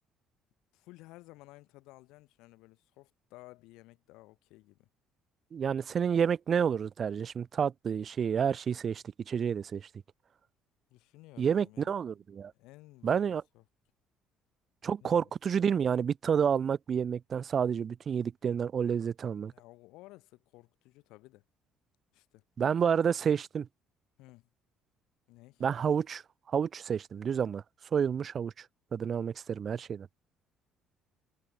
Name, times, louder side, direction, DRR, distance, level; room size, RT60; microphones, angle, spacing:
voice 1, 0.7-4.9 10.9-12.0 12.5-13.6 15.0-15.3 19.5-21.4 22.1-22.4 24.2-24.5 25.3-25.6, left 20 dB, 90° left, 3.6 m, -55 dB
voice 2, 5.5-9.8 11.4-12.5 13.0-13.4 14.8-19.5 22.6-23.7 25.6-26.2 26.5-27.6 27.9-28.6 28.9-30.1, right 7 dB, 35° right, 0.4 m, -29 dB
cardioid pair, 135°, 0 cm